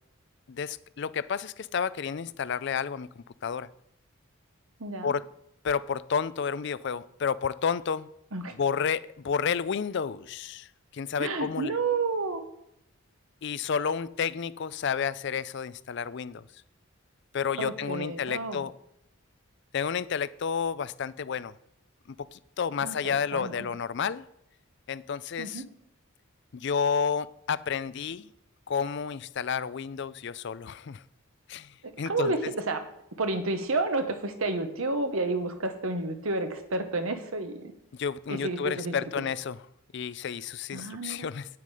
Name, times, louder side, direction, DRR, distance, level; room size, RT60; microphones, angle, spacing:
voice 1, 0.5-3.7 5.0-5.2 5.6-8.1 8.6-11.7 13.4-16.4 17.3-18.7 19.7-21.5 22.1-24.3 24.9-25.6 26.5-28.3 28.7-31.0 31.5-32.3 37.9-39.6 39.9-41.5, left 6 dB, 55° left, 17 dB, 0.4 m, -31 dB
voice 2, 4.8-5.1 8.3-8.6 11.2-12.4 17.6-18.6 22.8-23.7 25.4-25.6 31.8-32.8 33.1-37.7 38.3-39.3 40.7-41.3, right 3 dB, 70° right, 8 dB, 1.2 m, -31 dB
9.3 x 9.3 x 4.9 m, 0.80 s
head